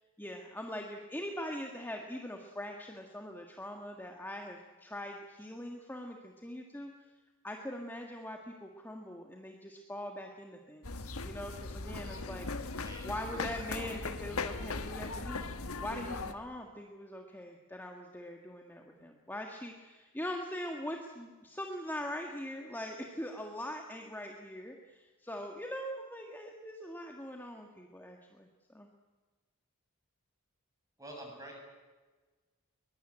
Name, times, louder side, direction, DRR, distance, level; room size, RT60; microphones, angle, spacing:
voice 1, 0.2-6.9 7.4-12.5 12.7-28.9, left 1 dB, 10° left, 2 dB, 1.7 m, -42 dB
sound 1, 10.8-16.3, left 3 dB, 70° left, 1.5 m, -39 dB
voice 2, 31.0-31.6, right 1 dB, 15° right, 1 dB, 7.7 m, -47 dB
22.5 x 21.5 x 8.9 m, 1.3 s
head